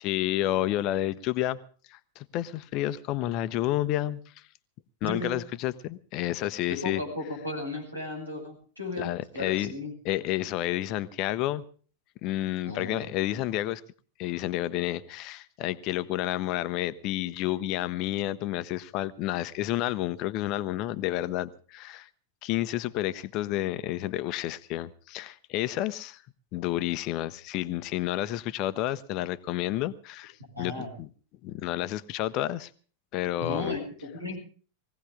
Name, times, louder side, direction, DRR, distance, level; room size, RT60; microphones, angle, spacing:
voice 1, 0.0-1.6 1.9-4.2 5.0-7.0 9.0-9.7 10.0-11.6 12.2-13.8 14.2-22.1 22.4-26.2 26.5-31.1 31.4-32.7 33.1-33.8, left 14 dB, 40° left, 14 dB, 0.8 m, -30 dB
voice 2, 5.0-5.4 6.7-9.9 12.6-13.0 30.6-30.9 33.4-34.4, left 2 dB, 85° right, 0 dB, 6.7 m, -35 dB
20.5 x 16.5 x 3.5 m, 0.40 s
figure-of-eight pair, 90°, 0 cm